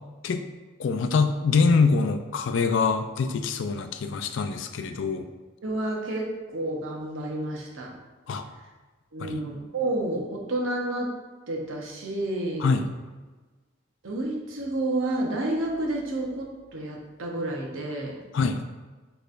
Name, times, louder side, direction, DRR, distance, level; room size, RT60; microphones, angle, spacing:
voice 1, 0.8-5.3 8.3-8.4 9.2-9.4 12.6-12.9 18.3-18.6, left 4 dB, 70° left, 7 dB, 0.4 m, -24 dB
voice 2, 5.6-7.9 9.1-11.1 11.5-12.7 14.0-18.2, right 1 dB, 85° right, -1 dB, 0.9 m, -30 dB
6.4 x 3.3 x 2.5 m, 1.3 s
head